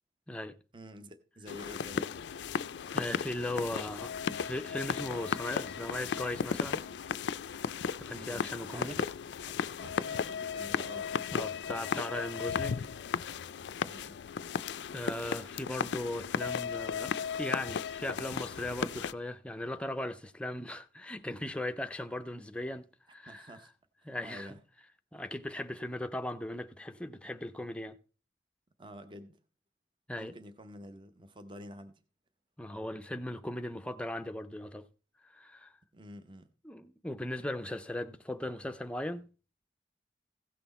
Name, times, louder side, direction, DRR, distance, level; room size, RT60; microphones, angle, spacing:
voice 1, 0.7-2.1 8.1-9.1 9.4-11.3 13.7-14.2 23.3-23.7 24.2-24.6 28.8-29.4 30.2-32.0 35.9-36.5, equal, 25° right, 0.7 m, -49 dB
sound 1, 1.5-19.1, left 6 dB, 85° left, 0.4 m, -35 dB
voice 2, 2.9-6.8 8.0-9.0 11.3-12.8 13.2-13.3 14.9-22.9 23.1-23.6 24.1-24.5 25.1-28.0 30.1-30.3 32.6-34.9 35.2-35.7 36.6-39.3, left 1 dB, 5° left, 0.5 m, -38 dB
16.0 x 5.9 x 4.1 m
head